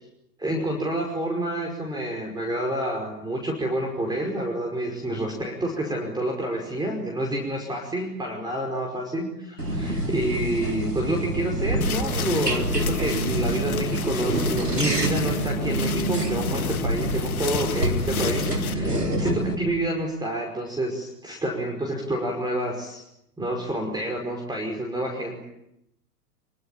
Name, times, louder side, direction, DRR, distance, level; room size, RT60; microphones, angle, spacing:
voice 1, 0.4-23.0 23.4-25.4, right 1 dB, 10° right, 2 dB, 5.5 m, -28 dB
sound 1, 9.6-19.5, right 1 dB, 90° right, 3.7 m, -27 dB
sound 2, 11.8-18.7, left 8 dB, 65° left, 1.5 m, -33 dB
27.0 x 24.5 x 8.9 m, 0.83 s
figure-of-eight pair, 95°, 46 cm